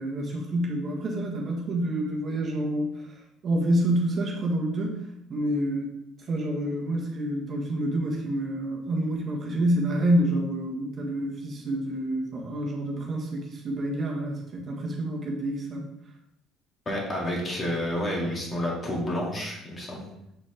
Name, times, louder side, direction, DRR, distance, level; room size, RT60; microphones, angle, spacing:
voice 1, 0.0-3.2 3.4-5.0 5.3-5.9 6.3-15.8, right 1 dB, 40° right, -1 dB, 1.3 m, -28 dB
voice 2, 16.9-20.0, left 1 dB, 25° left, -2 dB, 2.1 m, -29 dB
7.0 x 4.1 x 3.3 m, 0.82 s
cardioid pair, 105°, 0 cm